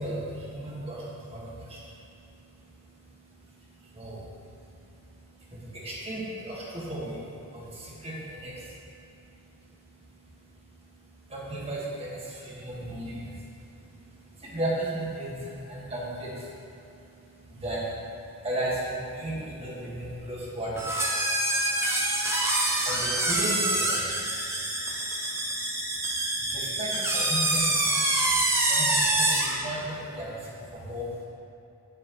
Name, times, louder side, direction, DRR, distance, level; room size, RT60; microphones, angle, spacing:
voice 1, 0.0-31.3, right 1 dB, 30° right, -5 dB, 1.6 m, -37 dB
sound 1, 20.8-29.6, right 2 dB, 10° right, 0.8 m, -26 dB
9.5 x 7.5 x 3.0 m, 2.8 s
head